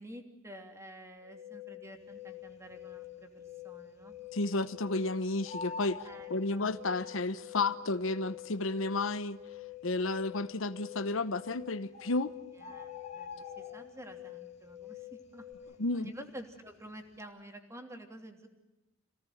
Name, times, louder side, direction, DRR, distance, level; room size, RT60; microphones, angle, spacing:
voice 1, 0.0-4.3 6.0-6.7 12.5-18.5, equal, 15° right, 4 dB, 3.0 m, -50 dB
sound 1, 1.2-15.5, left 14 dB, 55° left, 3.8 m, -48 dB
Bird, 2.5-3.1 3.5-3.6 3.8-5.0 5.3-7.1 8.0-8.1 8.7-8.8 9.0-9.1 9.7-10.2 11.2-11.3 11.6-11.7 11.9-14.2 14.6-14.9 15.2-16.6 16.9-17.2, left 4 dB, 35° left, 2.3 m, -46 dB
voice 2, 4.3-6.0 6.3-9.4 9.8-12.3 15.8-16.1, left 2 dB, 80° left, 11 dB, 0.9 m, -32 dB
28.0 x 18.0 x 9.3 m, 1.0 s
head